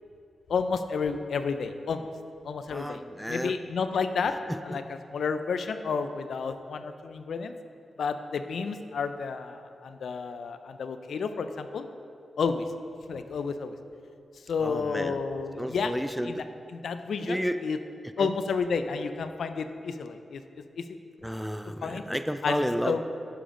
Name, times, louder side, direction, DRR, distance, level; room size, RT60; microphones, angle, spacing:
voice 1, 0.5-2.1 2.4-3.0 3.3-4.4 4.6-7.5 8.0-11.9 12.4-12.6 13.1-13.8 14.5-15.9 16.2-16.4 16.7-17.8 18.2-20.4 20.8-20.9 21.8-22.0 22.4-23.0, left 5 dB, 80° left, 9 dB, 0.4 m, -31 dB
voice 2, 2.7-3.6 4.5-4.8 14.6-15.2 15.6-16.3 17.2-17.6 18.2-18.3 21.2-23.0, equal, ahead, 9 dB, 0.4 m, -31 dB
10.0 x 6.8 x 3.7 m, 2.6 s
cardioid pair, 80°, 0 cm